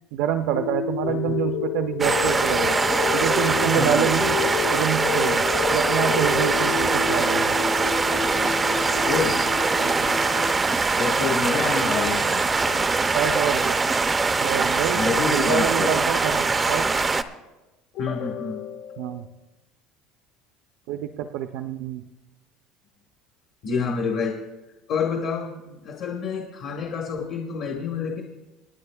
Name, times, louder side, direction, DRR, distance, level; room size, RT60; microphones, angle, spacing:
voice 1, 0.1-2.7 3.1-4.4 4.7-5.4 5.7-7.6 9.8-10.1 13.1-13.8 14.4-15.0 15.3-16.9 19.0-19.3 20.9-22.0, right 10 dB, 75° right, 7 dB, 0.5 m, -27 dB
sound 1, 0.5-10.5, left 9 dB, 70° left, 1.0 m, -29 dB
sound 2, 2.0-17.2, right 4 dB, 15° right, 0.5 m, -22 dB
voice 2, 3.7-4.1 9.0-9.4 11.0-12.9 14.9-15.9 17.9-19.2 23.6-24.4 24.9-28.2, left 5 dB, 55° left, 1 dB, 1.4 m, -28 dB
28.5 x 9.5 x 2.3 m, 1.1 s
cardioid pair, 155°, 0 cm